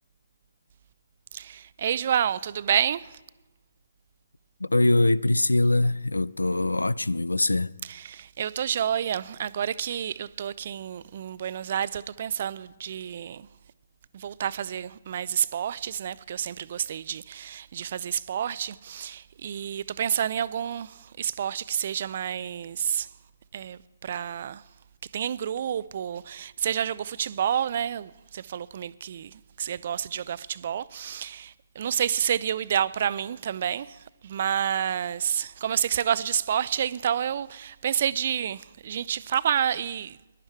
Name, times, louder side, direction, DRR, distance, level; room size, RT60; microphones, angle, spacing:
voice 1, 1.3-3.2 7.9-13.5 14.1-23.1 23.5-24.6 25.1-40.2, right 9 dB, 45° right, 0.5 m, -29 dB
voice 2, 4.6-7.7, left 2 dB, 85° left, 0.4 m, -23 dB
21.0 x 11.0 x 4.6 m
figure-of-eight pair, 140°, 0 cm